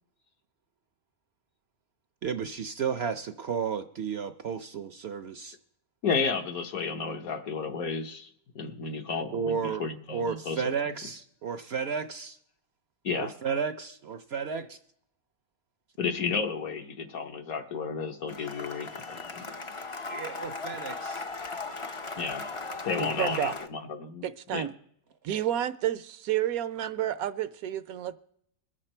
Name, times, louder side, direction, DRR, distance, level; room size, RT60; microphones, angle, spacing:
voice 1, 2.2-5.6 9.3-9.8 10.1-12.4 13.2-14.8 20.1-21.2, right 6 dB, 60° right, 9 dB, 0.7 m, -33 dB
voice 2, 6.0-10.7 13.0-13.3 16.0-19.4 22.2-22.5 22.8-24.2 24.5-24.7, left 5 dB, 75° left, 4 dB, 1.7 m, -32 dB
Cheering / Applause, 18.3-23.7, left 3 dB, 40° left, 0.4 m, -38 dB
voice 3, 23.0-23.5 24.2-24.7 25.2-28.2, right 11 dB, 80° right, 13 dB, 1.1 m, -30 dB
21.5 x 7.4 x 4.4 m, 0.69 s
omnidirectional pair, 1.5 m